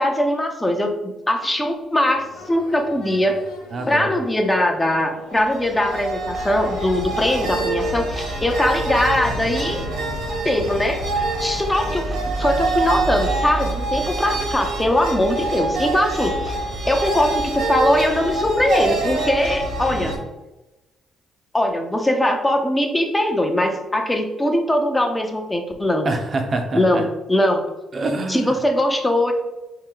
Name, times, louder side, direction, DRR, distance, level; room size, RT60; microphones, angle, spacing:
voice 1, 0.0-3.4 3.9-9.8 10.4-11.0 11.4-12.1 12.4-16.6 16.9-20.2 21.5-26.1 26.7-27.6 28.3-29.3, left 1 dB, 15° left, 3 dB, 0.6 m, -21 dB
sound 1, 2.1-8.1, left 3 dB, 80° left, 0.7 m, -39 dB
voice 2, 3.7-4.2 26.0-27.1 27.9-28.6, right 2 dB, 45° right, 5 dB, 0.6 m, -25 dB
sound 2, 5.3-20.2, right 2 dB, 75° right, 1.1 m, -26 dB
4.5 x 2.1 x 3.8 m, 1.0 s
cardioid pair, 90°, 0 cm